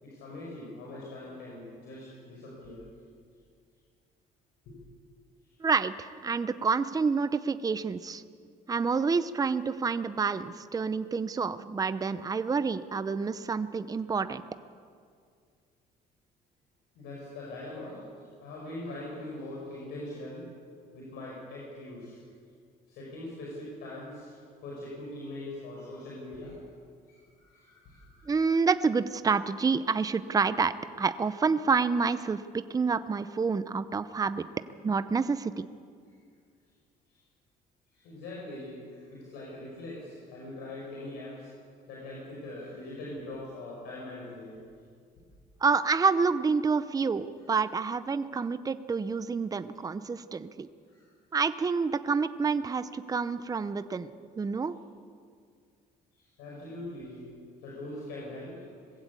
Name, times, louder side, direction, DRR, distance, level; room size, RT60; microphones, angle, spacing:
voice 1, 0.0-2.9 4.7-4.8 17.0-20.5 20.9-22.2 22.9-26.6 27.1-28.6 37.1-37.2 37.9-41.5 41.9-44.6 50.9-51.1 56.1-57.3 57.6-58.6, left 1 dB, 85° left, -4 dB, 5.6 m, -42 dB
voice 2, 5.6-8.2 8.7-14.4 28.3-30.7 31.0-34.5 34.8-35.7 45.6-50.7 51.3-54.7, right 5 dB, 20° right, 12 dB, 0.7 m, -28 dB
21.0 x 15.5 x 8.4 m, 2.2 s
cardioid pair, 110°, 17 cm